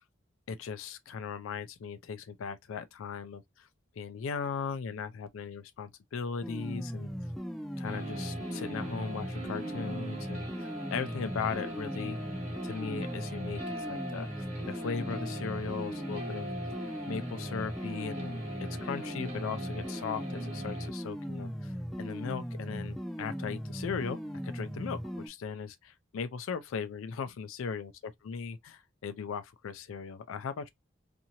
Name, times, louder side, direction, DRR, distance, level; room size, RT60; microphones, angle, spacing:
voice 1, 0.5-3.7 4.0-7.1 7.8-12.2 12.6-16.5 17.1-21.7 22.0-27.9 28.2-30.7, left 6 dB, 80° left, 0.4 m, -38 dB
sound 1, 6.4-25.3, equal, ahead, 0.4 m, -38 dB
sound 2, 7.8-20.9, right 1 dB, 35° right, 1.0 m, -42 dB
2.7 x 2.5 x 2.8 m
head